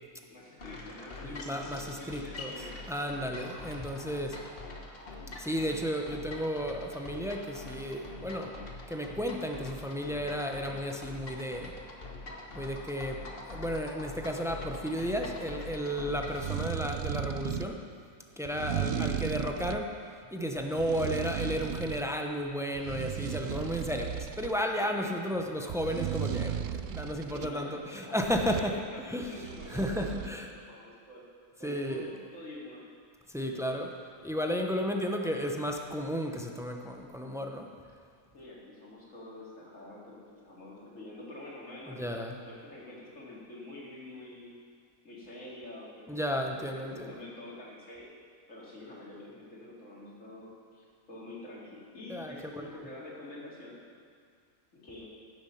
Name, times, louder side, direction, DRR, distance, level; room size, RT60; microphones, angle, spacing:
voice 1, 0.3-2.7 6.1-6.2 18.5-19.2 20.7-21.1 24.8-25.1 27.3-31.3 31.6-32.8 38.3-44.5 45.0-48.1 48.5-53.8 54.7-55.1, left 2 dB, 60° left, -5 dB, 2.9 m, -47 dB
sound 1, 0.6-16.5, left 2 dB, 45° left, 1.3 m, -44 dB
voice 2, 1.2-2.5 2.9-4.4 5.4-8.5 8.9-11.7 12.5-17.8 18.4-20.0 20.3-29.3 29.7-30.5 31.6-32.1 33.3-34.0 34.2-37.7 41.9-42.4 46.1-47.1 52.1-52.7, equal, 5° right, 2 dB, 0.4 m, -33 dB
sound 2, 16.2-17.8 18.5-19.9 20.6-22.1 22.5-24.6 25.7-27.5 28.2-28.7 29.2-30.3, right 9 dB, 65° right, 0.6 m, -35 dB
16.0 x 6.8 x 5.7 m, 2.1 s
omnidirectional pair, 1.5 m